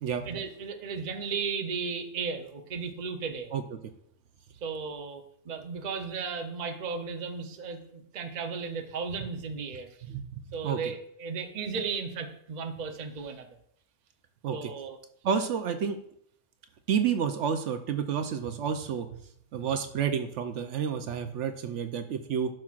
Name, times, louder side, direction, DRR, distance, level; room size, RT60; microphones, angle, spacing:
voice 1, 0.2-3.5 4.6-10.0 10.5-13.6 14.5-15.0, right 5 dB, 40° right, 5 dB, 0.7 m, -35 dB
voice 2, 10.0-10.8 14.4-14.7 15.2-16.0 16.9-19.2 19.5-22.5, right 7 dB, 70° right, 8 dB, 0.9 m, -30 dB
12.0 x 5.9 x 2.4 m, 0.68 s
omnidirectional pair, 1.3 m